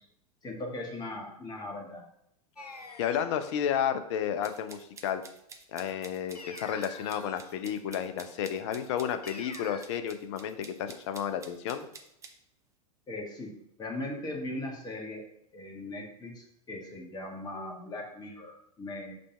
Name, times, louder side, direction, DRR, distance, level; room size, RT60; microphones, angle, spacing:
voice 1, 0.4-2.0 13.1-13.5 13.8-15.2 15.5-19.1, left 2 dB, 20° left, 0 dB, 1.5 m, -39 dB
sound 1, 2.6-3.5 6.3-7.6 9.2-9.8, left 3 dB, 85° left, 0.7 m, -46 dB
voice 2, 3.0-5.2 5.7-11.9, left 9 dB, 50° left, 9 dB, 0.7 m, -32 dB
sound 2, 4.4-12.3, right 5 dB, 15° right, 0.6 m, -50 dB
5.2 x 3.4 x 5.5 m, 0.76 s
figure-of-eight pair, 90°, 20 cm